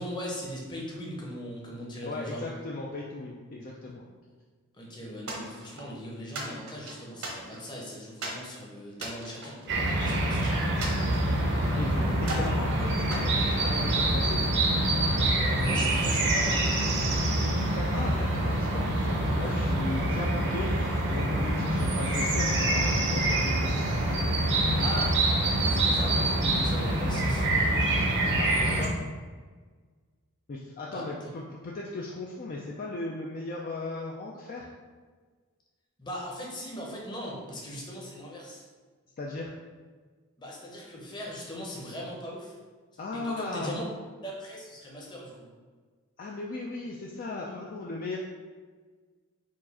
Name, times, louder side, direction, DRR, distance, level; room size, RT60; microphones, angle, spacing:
voice 1, 0.0-2.6 4.8-9.7 10.0-10.6 15.3-16.8 24.8-27.5 30.9-31.3 36.0-38.6 40.4-42.6 43.1-43.8 44.2-45.5, equal, 20° left, -3 dB, 0.8 m, -39 dB
voice 2, 2.0-4.0 11.1-11.4 11.8-14.4 17.5-23.7 28.4-29.0 30.5-34.7 39.2-39.5 43.0-43.7 46.2-48.2, left 2 dB, 40° left, -3 dB, 0.4 m, -37 dB
sound 1, 5.3-5.9 6.3-7.8 8.2-8.5 8.9-10.3 10.8-11.8 12.2-12.6 13.1-14.1, right 2 dB, 75° right, 1.0 m, -38 dB
sound 2, 9.7-28.9, right 1 dB, 50° right, 0.7 m, -26 dB
4.6 x 2.4 x 4.2 m, 1.5 s
head